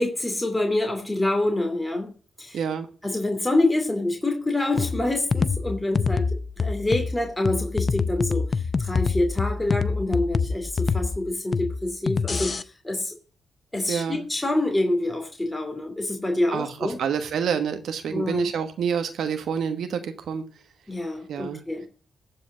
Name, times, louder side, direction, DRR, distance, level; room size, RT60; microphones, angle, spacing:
voice 1, 0.0-2.1 2.4-2.6 3.0-13.1 13.7-17.0 18.1-18.5 20.9-21.8, left 2 dB, 10° left, 4 dB, 2.6 m, -26 dB
voice 2, 2.5-2.9 13.9-14.2 16.5-20.4 21.3-21.6, right 7 dB, 75° right, 7 dB, 1.3 m, -28 dB
sound 1, 4.8-12.6, left 5 dB, 40° left, 0.5 m, -26 dB
14.5 x 5.0 x 7.6 m, 0.39 s
cardioid pair, 85°, 0 cm